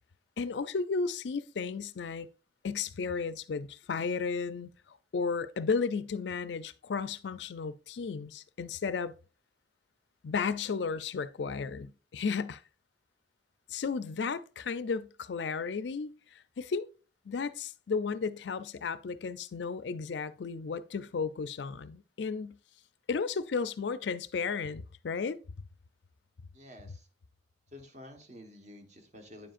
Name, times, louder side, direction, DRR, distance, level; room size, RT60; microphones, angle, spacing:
voice 1, 0.4-2.3 2.6-9.1 10.2-12.6 13.7-16.9 17.3-22.6 23.1-25.4, left 5 dB, 70° left, 0.4 m, -34 dB
voice 2, 26.5-27.1 27.7-29.5, left 1 dB, 40° right, 1.3 m, -50 dB
9.3 x 7.5 x 2.5 m
head